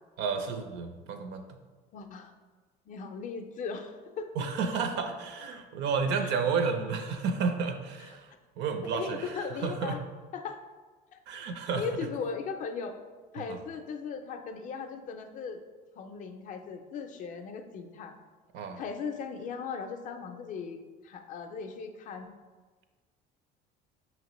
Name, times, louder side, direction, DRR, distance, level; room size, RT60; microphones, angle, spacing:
voice 1, 0.2-1.5 4.4-10.0 11.3-11.9 13.4-13.6 18.5-18.8, right 5 dB, 65° right, 7 dB, 0.5 m, -31 dB
voice 2, 1.9-2.3 2.9-4.3 6.2-6.3 8.9-10.0 10.3-10.6 11.1-11.2 11.8-13.0 13.3-15.6 16.0-18.1 18.8-22.3, left 5 dB, 45° left, 6 dB, 0.4 m, -38 dB
5.6 x 2.9 x 3.0 m, 1.4 s
cardioid pair, 130°, 19 cm